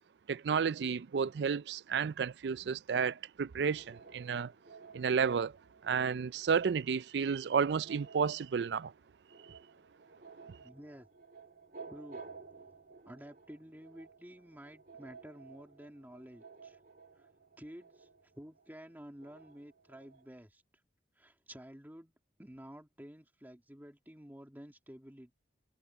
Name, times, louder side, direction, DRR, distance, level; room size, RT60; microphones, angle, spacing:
voice 1, 0.3-4.5 4.9-5.5 5.8-8.9, right 6 dB, 75° right, 0.4 m, -31 dB
sound 1, 3.6-20.3, right 4 dB, 55° right, 2.5 m, -55 dB
voice 2, 10.6-11.1 11.9-12.2 13.1-16.8 17.2-17.3 17.6-18.1 18.3-20.6 21.2-22.1 22.4-25.3, equal, 10° right, 2.2 m, -51 dB
head